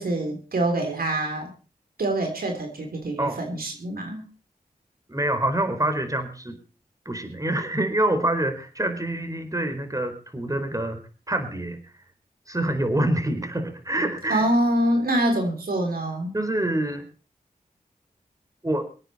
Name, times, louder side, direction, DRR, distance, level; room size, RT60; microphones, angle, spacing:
voice 1, 0.0-1.5 2.0-4.3 14.3-16.3, right 1 dB, 75° right, 3 dB, 3.5 m, -25 dB
voice 2, 5.1-6.6 7.0-11.0 11.3-11.9 12.5-14.4 16.3-17.1 18.6-18.9, right 1 dB, 20° right, 7 dB, 4.3 m, -26 dB
24.5 x 9.0 x 4.3 m, 0.36 s
cardioid pair, 40°, 15 cm